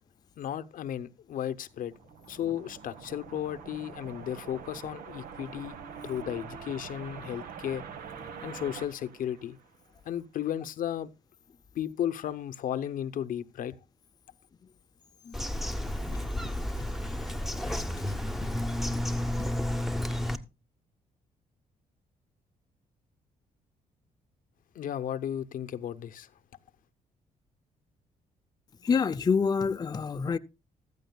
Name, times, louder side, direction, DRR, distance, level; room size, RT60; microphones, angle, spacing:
voice 1, 0.4-1.9 2.3-5.8 6.0-7.8 8.4-9.6 10.0-11.1 11.7-13.7 24.7-26.3, left 10 dB, 70° left, 0.8 m, -34 dB
sound 1, 1.6-10.0, right 6 dB, 85° right, 1.4 m, -45 dB
Bird vocalization bird call bird song, 15.3-20.4, left 1 dB, ahead, 0.9 m, -31 dB
voice 2, 28.8-30.4, left 5 dB, 30° left, 0.5 m, -27 dB
14.5 x 13.5 x 2.3 m
cardioid pair, 105°, 15 cm